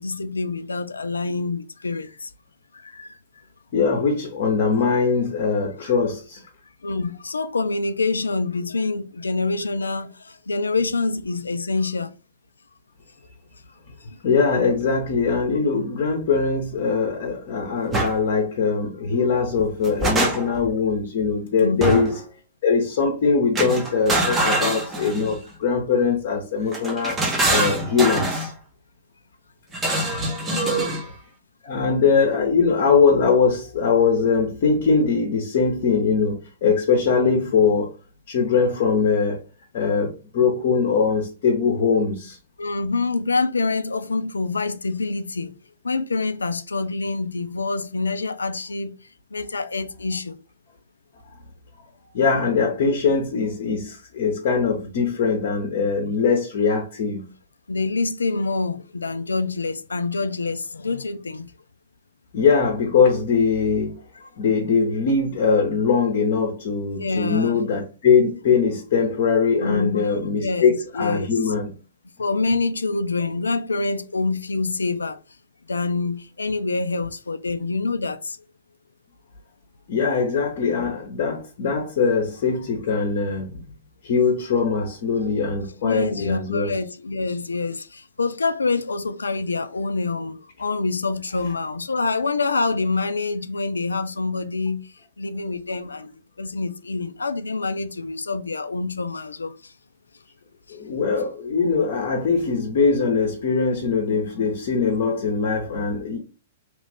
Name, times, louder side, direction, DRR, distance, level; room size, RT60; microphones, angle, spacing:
voice 1, 0.0-2.3 2.7-3.2 6.8-12.1 14.1-14.2 21.6-22.0 30.5-31.0 42.6-45.5 45.8-49.0 49.3-50.4 57.7-61.5 64.2-64.3 67.0-67.6 69.6-71.3 72.2-75.2 75.7-78.4 85.8-96.1 96.4-99.7 100.7-100.8, left 3 dB, 80° left, 0.4 m, -26 dB
voice 2, 3.7-6.4 14.2-22.1 22.6-27.2 27.5-28.5 30.1-30.3 31.6-37.9 38.3-39.4 39.7-42.4 52.1-57.2 62.3-64.0 64.4-71.7 79.9-83.6 84.0-86.7 100.7-106.2, left 5 dB, 50° left, 0.8 m, -21 dB
sound 1, 17.9-18.1 19.6-20.7 21.8-22.2 23.5-25.4 26.7-28.5 29.7-31.1, right 2 dB, 15° right, 0.8 m, -24 dB
3.0 x 2.4 x 3.4 m
figure-of-eight pair, 110°, 0 cm